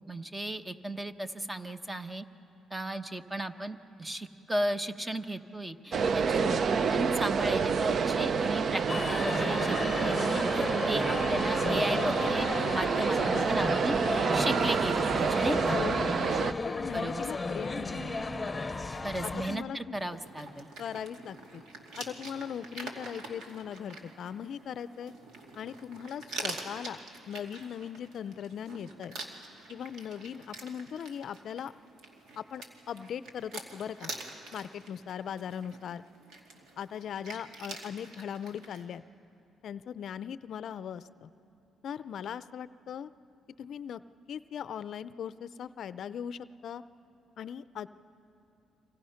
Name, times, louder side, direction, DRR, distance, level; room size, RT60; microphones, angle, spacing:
voice 1, 0.1-2.2 2.7-8.8 9.1-15.8 16.9-17.2 19.0-20.7, right 1 dB, 15° right, 9 dB, 1.0 m, -35 dB
sound 1, 5.9-16.5, right 5 dB, 55° right, 0.6 m, -28 dB
sound 2, 8.9-19.6, left 3 dB, 20° left, 1.0 m, -34 dB
voice 2, 15.7-16.1 16.6-18.2 19.2-20.0 20.8-21.6 22.0-25.1 25.6-27.0 27.3-29.2 29.7-31.7 32.4-34.1 34.5-36.0 36.8-39.0 39.6-41.3 41.8-43.1 43.6-44.0 44.3-46.8 47.4-47.9, left 8 dB, 65° left, 15 dB, 0.5 m, -39 dB
sound 3, 20.0-38.8, right 2 dB, 80° right, 2.5 m, -46 dB
29.5 x 25.5 x 5.8 m, 2.8 s
cardioid pair, 90°, 0 cm